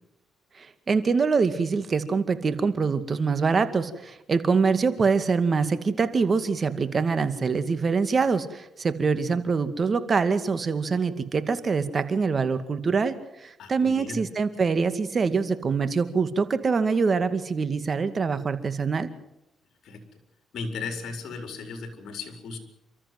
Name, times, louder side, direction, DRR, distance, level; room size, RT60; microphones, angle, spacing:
voice 1, 0.6-19.1, right 5 dB, 40° right, 11 dB, 2.2 m, -24 dB
voice 2, 13.6-14.2 19.8-20.0 20.5-22.6, left 4 dB, 65° left, 6 dB, 4.5 m, -36 dB
30.0 x 14.0 x 7.8 m, 0.88 s
cardioid pair, 90°, 0 cm